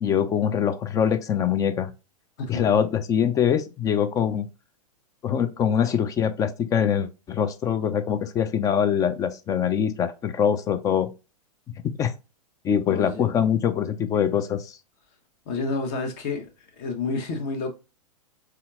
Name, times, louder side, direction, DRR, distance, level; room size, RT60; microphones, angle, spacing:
voice 1, 0.0-1.9 2.5-4.5 5.2-11.1 12.0-12.1 12.6-14.8, left 8 dB, 20° left, 0.4 m, -23 dB
voice 2, 2.4-2.7 12.9-13.3 15.5-16.5 16.8-17.7, left 3 dB, 40° left, 1.3 m, -29 dB
4.2 x 3.7 x 2.4 m
figure-of-eight pair, 100°, 19 cm